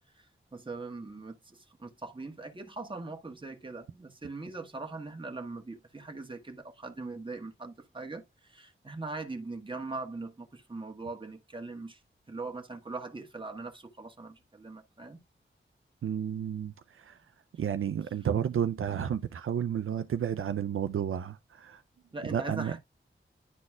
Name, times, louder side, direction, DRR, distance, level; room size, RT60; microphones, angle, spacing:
voice 1, 0.5-12.0 12.3-15.2 22.1-22.8, right 3 dB, 25° right, 1.3 m, -41 dB
voice 2, 16.0-17.2 17.6-21.8 22.3-22.7, right 9 dB, 80° right, 0.4 m, -31 dB
11.0 x 4.1 x 2.2 m
wide cardioid pair, 75°, 21 cm